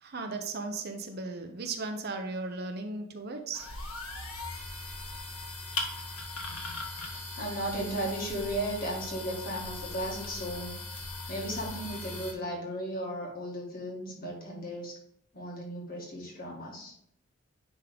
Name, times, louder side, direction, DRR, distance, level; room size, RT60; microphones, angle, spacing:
voice 1, 0.0-3.7, right 3 dB, 45° right, 5 dB, 0.7 m, -36 dB
sound 1, 3.5-12.3, left 3 dB, 85° left, 1.4 m, -39 dB
voice 2, 7.4-10.8 11.3-15.0 15.3-16.9, right 1 dB, 40° left, -1 dB, 1.9 m, -35 dB
10.0 x 3.7 x 3.5 m, 0.73 s
head